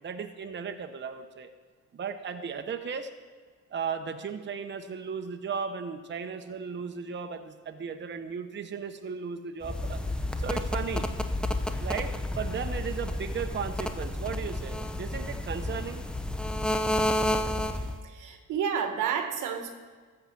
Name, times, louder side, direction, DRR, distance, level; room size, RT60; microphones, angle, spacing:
voice 1, 0.0-1.5 1.9-3.1 3.7-11.1 11.8-16.0, right 6 dB, 40° right, 6 dB, 0.9 m, -36 dB
sound 1, 9.6-18.0, left 1 dB, 5° left, 0.8 m, -31 dB
voice 2, 18.0-19.7, right 7 dB, 85° right, 6 dB, 1.4 m, -30 dB
13.5 x 5.7 x 7.5 m, 1.5 s
cardioid pair, 90°, 30 cm